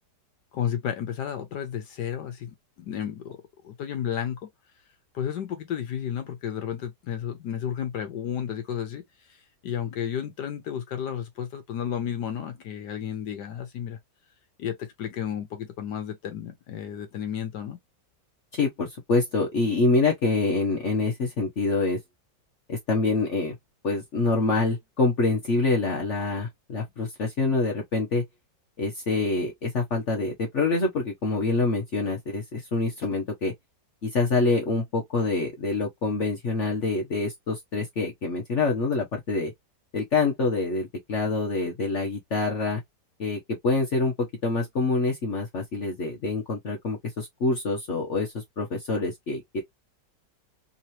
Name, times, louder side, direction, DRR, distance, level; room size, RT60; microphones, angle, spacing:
voice 1, 0.5-3.4 3.6-4.5 5.1-14.0 14.6-17.8, left 9 dB, 75° left, 1.4 m, -32 dB
voice 2, 18.5-22.0 22.7-23.6 23.8-28.2 28.8-33.5 34.0-39.5 39.9-42.8 43.2-49.6, left 3 dB, 50° left, 1.2 m, -26 dB
3.7 x 3.0 x 2.7 m
omnidirectional pair, 1.9 m